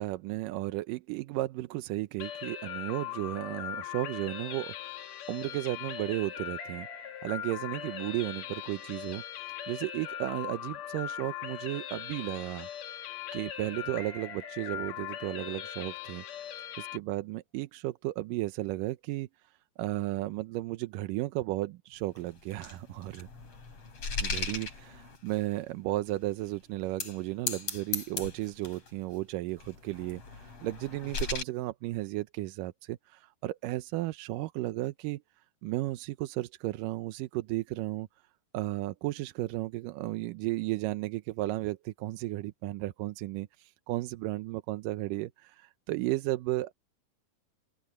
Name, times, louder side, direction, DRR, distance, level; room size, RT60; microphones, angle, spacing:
voice 1, 0.0-6.9 7.2-9.2 9.7-12.7 13.3-16.2 16.8-19.3 19.8-23.3 24.2-35.2 35.6-38.1 38.5-46.7, right 18 dB, 85° right, 2.4 m, -34 dB
sound 1, 2.2-17.0, left 10 dB, 65° left, 2.4 m, -40 dB
sound 2, 22.2-25.5 26.1-26.2 26.8-27.2 27.5-28.9 29.6-31.4, left 4 dB, 45° left, 5.3 m, -37 dB
open air
omnidirectional pair, 3.7 m